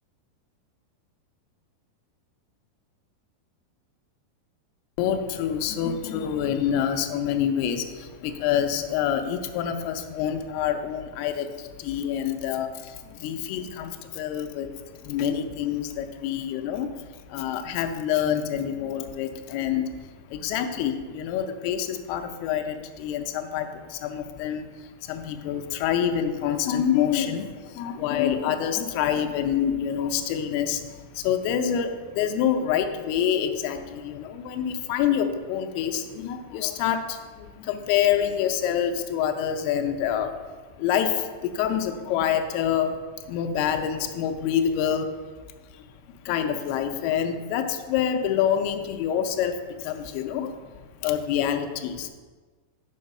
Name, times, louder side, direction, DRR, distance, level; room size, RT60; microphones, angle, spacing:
voice 1, 5.0-40.5 40.8-45.2 45.7-45.9 46.2-52.1, left 9 dB, 80° left, 6 dB, 2.5 m, -27 dB
5.8 x 4.7 x 5.4 m, 1.4 s
omnidirectional pair, 4.7 m